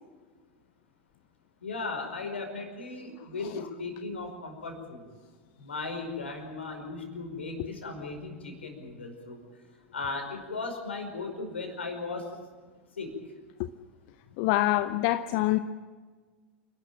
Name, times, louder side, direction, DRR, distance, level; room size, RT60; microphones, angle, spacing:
voice 1, 1.6-5.1 5.6-9.4 9.9-12.3 13.0-13.2, left 3 dB, 75° left, 4 dB, 5.2 m, -37 dB
voice 2, 14.4-15.6, left 16 dB, 50° left, 12 dB, 0.8 m, -25 dB
28.5 x 12.5 x 8.9 m, 1.5 s
figure-of-eight pair, 85°, 6 cm